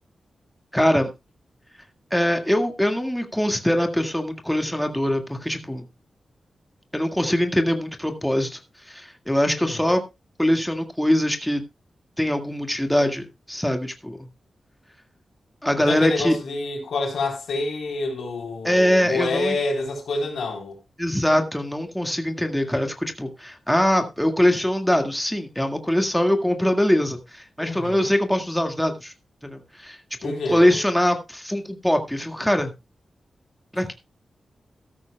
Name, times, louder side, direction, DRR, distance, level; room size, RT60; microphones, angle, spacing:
voice 1, 0.7-1.1 2.1-5.8 6.9-8.6 8.9-10.0 10.4-11.6 12.2-14.3 15.6-16.4 18.6-19.6 21.0-29.1 29.4-32.7 33.7-33.9, equal, 5° left, 1.8 m, -22 dB
voice 2, 9.5-9.9 15.8-20.8 27.6-28.1 30.2-30.8, left 3 dB, 90° left, 3.7 m, -28 dB
13.5 x 13.5 x 2.2 m
cardioid pair, 65°, 0 cm